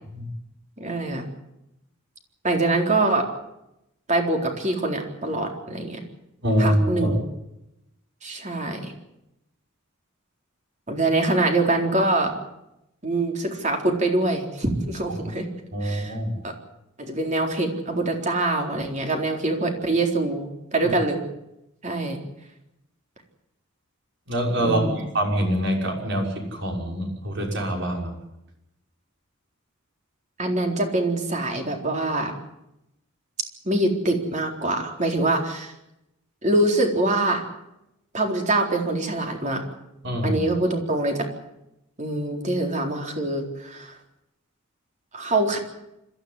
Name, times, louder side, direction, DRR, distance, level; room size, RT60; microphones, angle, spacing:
voice 1, 0.8-1.2 2.4-3.2 4.1-6.0 6.6-7.2 8.2-8.9 10.9-12.3 13.0-15.5 15.8-16.1 16.4-16.5 17.0-21.2 21.8-22.2 24.6-25.0 30.4-32.3 33.7-35.7 36.4-37.4 38.1-39.6 40.2-41.3 42.0-44.0 45.1-45.6, right 2 dB, 35° right, 3 dB, 4.1 m, -24 dB
voice 2, 6.4-7.1 15.7-16.3 24.3-24.9 25.1-28.1 40.0-40.4, equal, 55° right, 2 dB, 6.1 m, -24 dB
26.5 x 14.0 x 9.8 m, 0.87 s
head